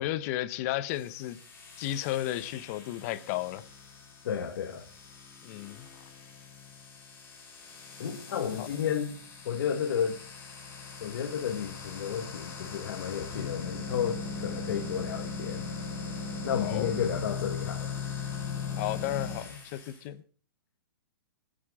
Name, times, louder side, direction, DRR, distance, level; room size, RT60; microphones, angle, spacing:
voice 1, 0.0-1.4 1.8-3.6 5.4-5.9 8.6-8.7 16.6-16.9 18.8-20.2, left 14 dB, 40° left, 1.1 m, -33 dB
sound 1, 0.9-20.0, left 5 dB, 20° left, 4.6 m, -39 dB
voice 2, 4.2-4.8 8.0-9.2 9.4-10.2 11.0-15.6 16.4-18.0, left 8 dB, 65° left, 1.7 m, -32 dB
25.0 x 8.8 x 3.8 m
hypercardioid pair, 145°, 12 cm